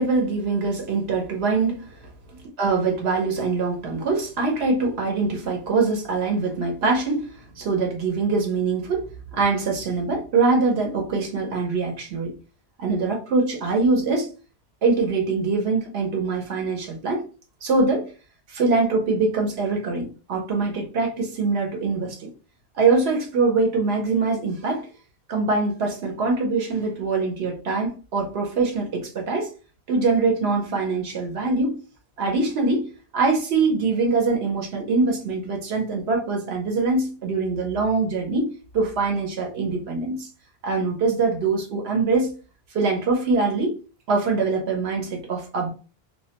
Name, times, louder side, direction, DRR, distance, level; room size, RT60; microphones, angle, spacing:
voice 1, 0.0-2.1 2.6-9.1 9.3-12.3 12.8-14.3 14.8-17.3 17.6-18.1 18.5-22.3 22.7-24.9 25.3-29.5 29.9-31.8 32.2-40.3 40.6-42.4 42.7-43.8 44.1-45.7, right 3 dB, 85° right, 0.9 m, -23 dB
2.3 x 2.1 x 2.7 m
omnidirectional pair, 1.0 m